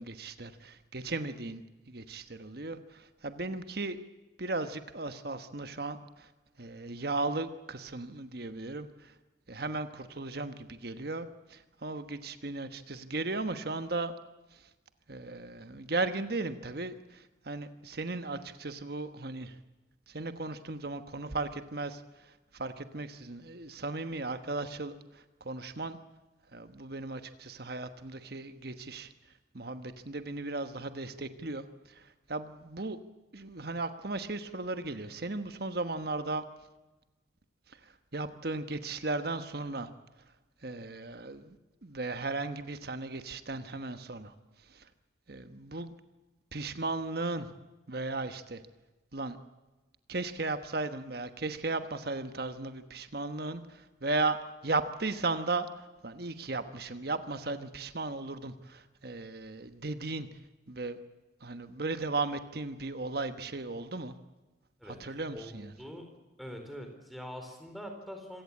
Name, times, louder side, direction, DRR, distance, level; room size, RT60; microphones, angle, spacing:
voice 1, 0.0-4.0 4.4-6.3 6.6-9.1 9.5-14.1 14.5-14.7 15.1-19.6 20.1-26.0 26.5-29.1 29.5-33.0 33.3-36.4 37.7-39.9 40.6-41.6 41.8-44.3 44.7-44.9 45.3-45.9 46.5-47.5 47.9-48.6 49.1-49.4 50.1-54.4 54.6-55.7 56.0-60.3 60.7-61.0 61.4-64.1 64.8-65.7, right 3 dB, 55° right, 9 dB, 1.2 m, -36 dB
voice 2, 65.3-66.1 66.4-68.4, equal, ahead, 4 dB, 4.2 m, -44 dB
26.0 x 17.5 x 8.5 m, 1.1 s
head